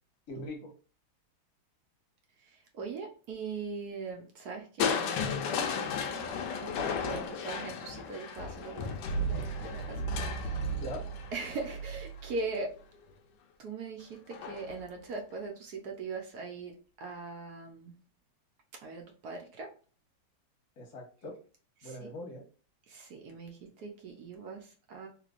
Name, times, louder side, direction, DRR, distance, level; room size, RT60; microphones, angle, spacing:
voice 1, 0.3-0.7 7.0-7.2 10.7-11.0 20.8-21.3 21.8-22.4, left 1 dB, 55° left, 0 dB, 1.4 m, -41 dB
voice 2, 2.7-6.3 6.6-10.0 10.3-10.7 11.3-12.7 13.6-18.0 18.8-19.7 21.8-22.1 22.9-25.1, right 4 dB, 65° right, 2 dB, 1.0 m, -41 dB
Crushing, 4.8-12.7 14.3-14.8 15.3-15.4, left 3 dB, 75° left, 1.1 m, -34 dB
3.3 x 3.2 x 2.4 m, 0.38 s
omnidirectional pair, 2.3 m